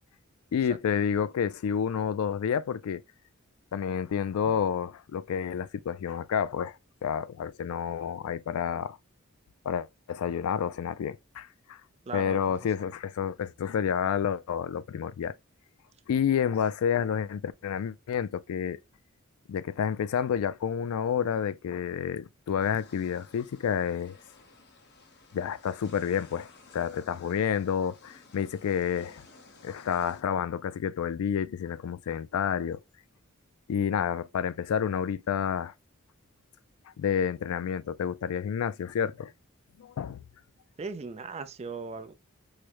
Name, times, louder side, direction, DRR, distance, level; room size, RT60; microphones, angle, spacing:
voice 1, 0.5-3.0 3.7-9.0 9.6-11.8 12.1-15.3 16.1-18.8 19.5-24.2 25.3-26.5 26.7-29.2 29.6-32.8 33.7-35.7 37.0-39.3 39.8-40.2, left 8 dB, 90° left, 0.3 m, -29 dB
voice 2, 12.1-12.4 40.8-42.1, right 4 dB, 30° right, 0.4 m, -37 dB
sound 1, 22.6-30.2, left 3 dB, 50° left, 0.8 m, -55 dB
4.8 x 2.1 x 2.9 m
head